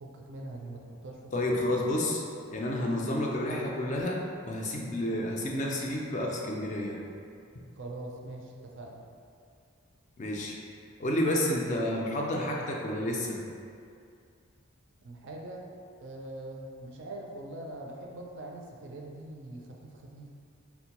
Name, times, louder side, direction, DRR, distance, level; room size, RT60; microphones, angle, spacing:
voice 1, 0.0-1.2 7.8-9.0 15.0-15.7 16.0-20.3, right 1 dB, 55° right, 0 dB, 0.4 m, -42 dB
voice 2, 1.3-2.2 2.5-7.0 10.2-10.6 11.0-13.4, left 1 dB, 35° left, -1 dB, 0.3 m, -30 dB
4.3 x 2.2 x 2.8 m, 2.4 s
head